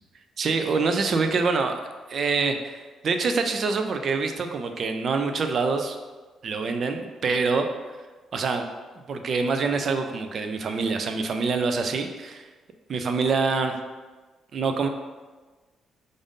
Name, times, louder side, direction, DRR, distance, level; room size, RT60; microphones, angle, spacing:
voice 1, 0.4-1.8 2.1-6.0 6.4-7.7 8.3-8.6 9.1-12.5 12.9-13.7 14.5-14.9, right 4 dB, 55° right, 6 dB, 0.4 m, -25 dB
5.1 x 2.6 x 3.6 m, 1.3 s
cardioid pair, 90°, 0 cm